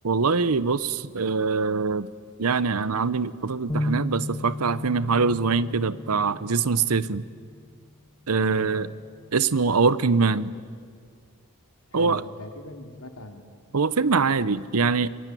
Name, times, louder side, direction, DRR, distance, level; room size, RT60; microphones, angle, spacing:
voice 1, 0.0-2.1 2.4-7.2 8.3-8.9 9.3-10.5 11.9-12.2 13.7-15.1, right 4 dB, 80° right, 17 dB, 0.8 m, -23 dB
sound 1, 3.7-7.2, left 1 dB, 20° left, 1.3 m, -33 dB
voice 2, 8.4-8.8 11.9-13.5, left 1 dB, 85° left, 5 dB, 2.9 m, -39 dB
27.0 x 22.0 x 9.3 m, 2.1 s
head